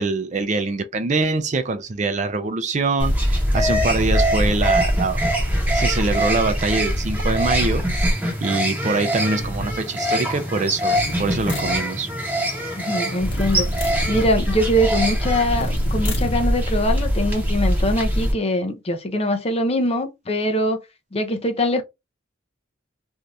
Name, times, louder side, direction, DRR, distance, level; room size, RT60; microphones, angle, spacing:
voice 1, 0.0-5.2 5.7-7.8 8.4-12.1, right 3 dB, 40° right, 0.4 m, -24 dB
sound 1, 3.0-18.3, equal, 10° right, 0.8 m, -22 dB
sound 2, 9.4-9.8 10.9-11.8 13.2-14.3 15.5-16.4, equal, 75° left, 1.0 m, -30 dB
voice 2, 12.8-20.8 21.1-21.8, equal, 35° left, 0.5 m, -23 dB
2.7 x 2.4 x 3.2 m
head